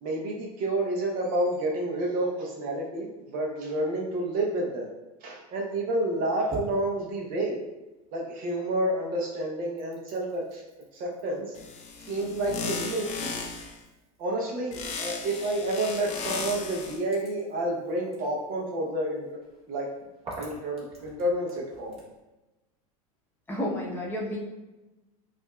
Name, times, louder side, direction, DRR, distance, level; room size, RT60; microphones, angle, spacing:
voice 1, 0.0-4.9 5.2-7.6 8.1-10.6 10.9-11.5 12.1-13.4 14.2-19.3 19.7-19.9 20.4-22.0, right 1 dB, 50° right, -1 dB, 0.8 m, -29 dB
sound 1, 5.9-8.6 8.9-22.2, right 2 dB, 30° right, 1.3 m, -49 dB
sound 2, 11.6-13.8 14.7-17.0, left 4 dB, 35° left, 0.6 m, -36 dB
voice 2, 23.5-24.4, left 1 dB, 10° left, -5 dB, 0.9 m, -31 dB
5.0 x 2.5 x 2.3 m, 1.1 s
hypercardioid pair, 105°, 19 cm